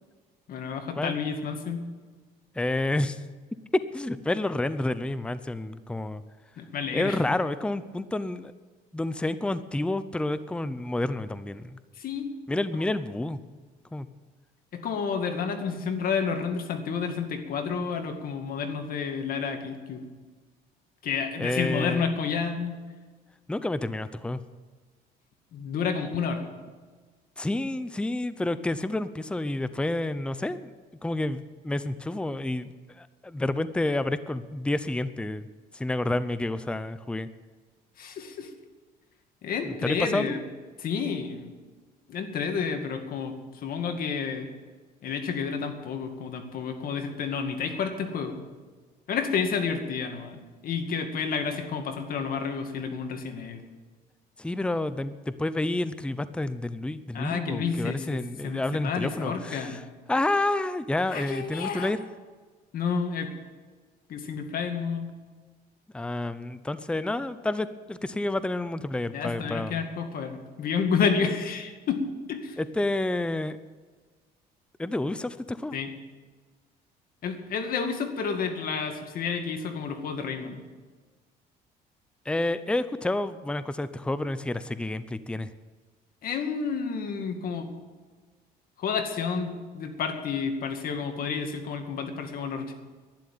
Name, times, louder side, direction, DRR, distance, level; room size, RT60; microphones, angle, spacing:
voice 1, 0.5-1.9 6.6-7.2 12.0-12.3 14.7-20.0 21.0-22.8 25.5-26.4 38.0-38.5 39.4-40.4 40.8-41.5 42.1-44.5 45.0-48.4 49.1-53.6 57.1-59.8 61.1-61.9 62.7-63.3 64.1-65.1 69.1-72.0 72.3-72.6 75.7-75.9 77.2-80.6 86.2-87.7 88.8-92.7, left 6 dB, 60° left, 6 dB, 2.2 m, -30 dB
voice 2, 2.6-3.2 3.7-6.2 6.9-8.5 8.9-11.8 12.5-13.4 13.9-14.1 21.4-22.1 23.5-24.4 27.4-30.7 31.0-35.5 35.7-37.3 39.6-40.4 54.4-59.8 60.1-62.0 65.9-69.8 72.6-73.6 74.8-75.7 82.3-85.5, left 2 dB, 5° left, 14 dB, 0.6 m, -29 dB
11.5 x 10.5 x 9.2 m, 1.4 s
cardioid pair, 110°, 17 cm